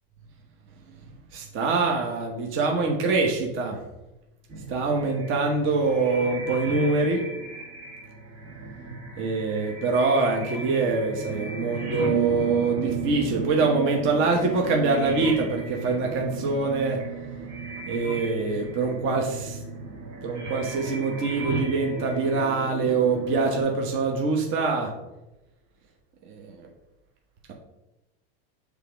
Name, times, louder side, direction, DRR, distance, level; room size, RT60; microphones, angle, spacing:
voice 1, 1.3-3.8 4.7-7.2 9.2-17.0 17.9-19.6 20.2-24.9 26.2-26.7, right 3 dB, 40° right, 0 dB, 1.1 m, -24 dB
sound 1, 4.5-23.6, right 5 dB, 60° right, 2.3 m, -34 dB
6.7 x 3.5 x 5.1 m, 0.98 s
supercardioid pair, 130°, 31 cm